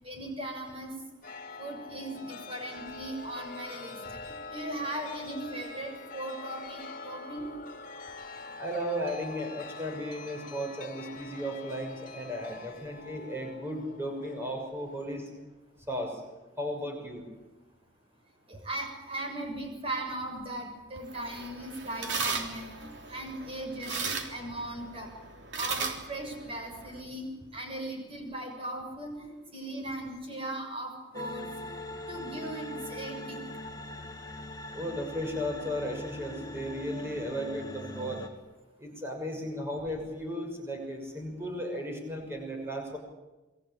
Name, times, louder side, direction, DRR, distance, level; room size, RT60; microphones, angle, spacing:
voice 1, 0.0-0.9 1.6-4.2 4.5-7.5 18.5-25.1 25.6-31.5 32.1-33.4, right 1 dB, 30° right, 3 dB, 6.9 m, -38 dB
Chime, 1.2-15.4, left 3 dB, 45° left, 2.6 m, -45 dB
voice 2, 8.6-15.3 15.9-16.2 16.6-17.2 34.7-38.2 38.8-43.0, equal, 15° right, 2 dB, 6.3 m, -35 dB
sound 1, 21.0-27.0, right 4 dB, 70° right, 3.4 m, -37 dB
sound 2, 31.1-38.3, left 1 dB, 20° left, 2.6 m, -41 dB
28.0 x 22.0 x 8.6 m, 1.1 s
head